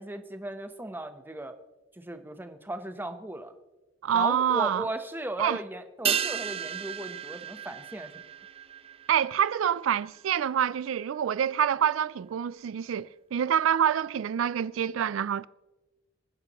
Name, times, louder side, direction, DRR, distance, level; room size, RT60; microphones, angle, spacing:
voice 1, 0.0-1.5 1.9-3.5 4.1-8.2, right 1 dB, 10° right, 0.9 m, -37 dB
voice 2, 4.0-4.9 5.4-5.6 9.1-15.5, right 9 dB, 85° right, 0.3 m, -26 dB
sound 1, 6.0-10.8 11.0-11.1, right 8 dB, 30° right, 0.5 m, -34 dB
26.5 x 10.0 x 3.0 m
head